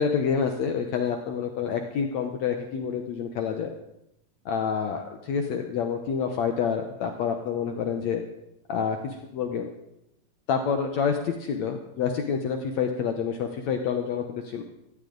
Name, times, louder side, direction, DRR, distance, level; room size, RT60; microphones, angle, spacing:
voice 1, 0.0-3.7 4.5-8.2 8.7-9.7 10.5-14.6, left 6 dB, 70° left, 5 dB, 1.8 m, -28 dB
18.5 x 14.5 x 3.9 m, 0.82 s
omnidirectional pair, 4.2 m